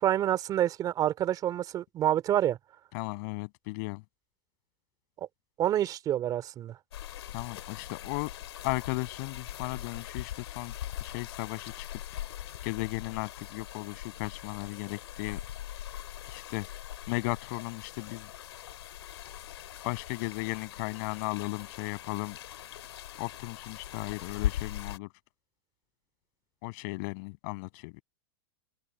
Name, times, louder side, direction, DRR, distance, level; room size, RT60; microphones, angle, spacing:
voice 1, 0.0-2.6 5.6-6.8, right 11 dB, 25° right, 3.1 m, -27 dB
voice 2, 2.9-4.0 7.3-8.3 8.6-10.7 11.0-12.0 12.6-15.4 16.3-16.7 17.1-18.3 19.8-22.4 23.2-25.1 26.6-28.0, left 29 dB, 50° left, 7.3 m, -35 dB
sound 1, 6.9-25.0, left 12 dB, 80° left, 2.8 m, -41 dB
hypercardioid pair, 140°, 14 cm